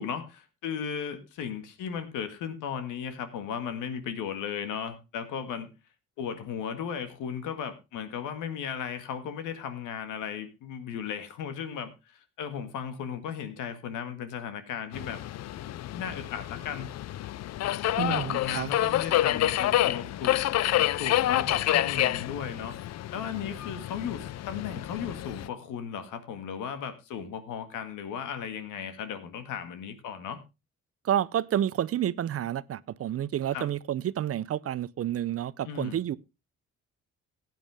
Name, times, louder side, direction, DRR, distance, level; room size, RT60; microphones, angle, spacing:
voice 1, 0.0-5.7 6.2-15.2 15.9-16.9 18.0-20.4 21.0-22.7 23.1-30.4 33.5-33.7 35.6-36.0, left 7 dB, 90° left, 1.9 m, -36 dB
Subway metro underground, 14.9-25.5, left 13 dB, 60° left, 0.5 m, -28 dB
voice 2, 18.0-18.7 31.0-36.2, right 11 dB, 50° right, 0.6 m, -29 dB
15.0 x 9.2 x 3.5 m
cardioid pair, 90°, 30 cm